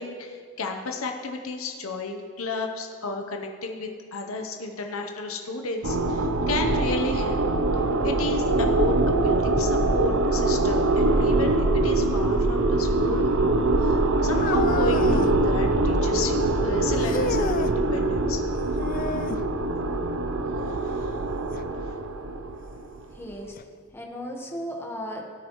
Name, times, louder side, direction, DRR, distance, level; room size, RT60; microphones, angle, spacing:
voice 1, 0.0-7.4 8.0-18.4 20.6-21.1 21.9-22.0, left 3 dB, 85° left, 3 dB, 0.9 m, -33 dB
sound 1, 5.8-23.2, right 2 dB, 75° right, 0.7 m, -23 dB
sound 2, 14.3-15.4 17.0-17.8 18.8-19.5 21.5-21.6 22.5-22.6 23.6-23.7, left 5 dB, 40° left, 0.4 m, -32 dB
voice 2, 23.1-23.6 23.9-25.3, equal, 10° left, 0 dB, 1.3 m, -35 dB
17.0 x 9.8 x 3.1 m, 2.1 s
head